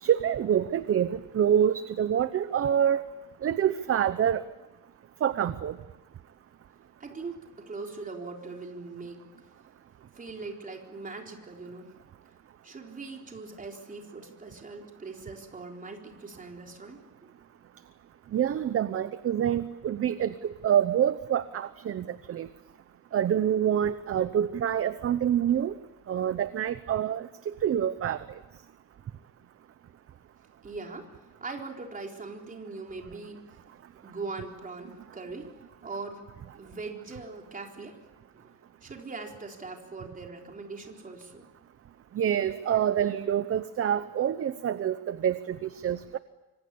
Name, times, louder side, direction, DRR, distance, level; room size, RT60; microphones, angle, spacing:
voice 1, 0.0-3.1 3.4-4.4 5.2-5.8 18.3-22.5 23.1-25.7 26.1-28.3 42.1-46.2, right 9 dB, 40° right, 13 dB, 0.8 m, -26 dB
voice 2, 7.0-9.3 10.1-11.9 12.6-17.3 30.6-31.1 31.4-33.7 34.0-35.6 35.8-36.2 36.6-38.0 38.3-38.5 38.8-41.5 42.5-42.8, right 3 dB, 20° right, 2 dB, 4.0 m, -41 dB
25.5 x 25.0 x 8.6 m, 1.1 s
cardioid pair, 160°, 36 cm